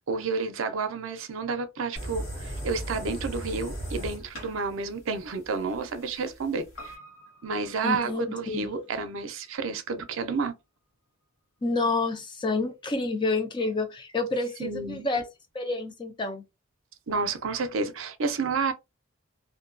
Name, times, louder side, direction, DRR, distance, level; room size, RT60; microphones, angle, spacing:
voice 1, 0.1-7.0 7.4-10.5 14.6-15.1 17.1-18.7, right 4 dB, 80° right, 0.5 m, -30 dB
sound 1, 2.0-6.9, right 1 dB, 85° left, 1.3 m, -37 dB
Piano, 6.8-11.3 11.6-11.7, equal, 70° left, 0.6 m, -51 dB
voice 2, 7.8-8.7 11.6-15.2 15.5-16.4, left 3 dB, 25° left, 0.4 m, -29 dB
2.6 x 2.2 x 2.4 m
head